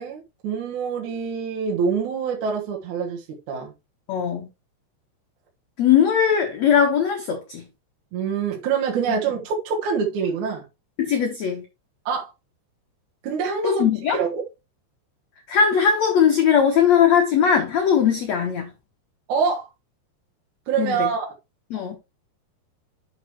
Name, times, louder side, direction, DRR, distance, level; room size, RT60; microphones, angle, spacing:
voice 1, 0.0-3.7 8.1-10.7 12.1-12.3 13.2-13.8 14.1-14.4 19.3-19.7 20.7-21.3, right 6 dB, 60° right, 2.3 m, -25 dB
voice 2, 4.1-4.5 5.8-7.6 11.0-11.6 13.6-14.2 15.5-18.7 20.8-21.1 21.7-22.0, left 7 dB, 70° left, 1.7 m, -19 dB
9.5 x 6.8 x 3.1 m
omnidirectional pair, 5.0 m